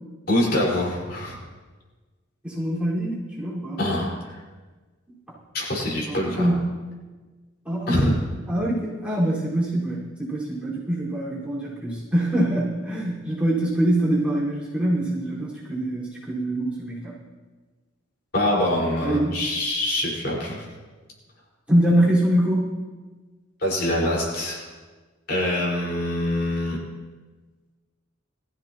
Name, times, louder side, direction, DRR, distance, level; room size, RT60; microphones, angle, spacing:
voice 1, 0.3-1.4 3.8-4.2 5.5-6.6 7.9-8.1 18.3-20.6 23.6-24.6 25.3-26.8, left 1 dB, 55° left, -4 dB, 5.1 m, -24 dB
voice 2, 2.4-3.8 6.1-6.7 7.6-8.1 8.5-17.1 19.0-19.3 21.7-22.7, right 1 dB, 5° right, -9 dB, 4.9 m, -24 dB
22.0 x 15.0 x 3.0 m, 1.3 s
head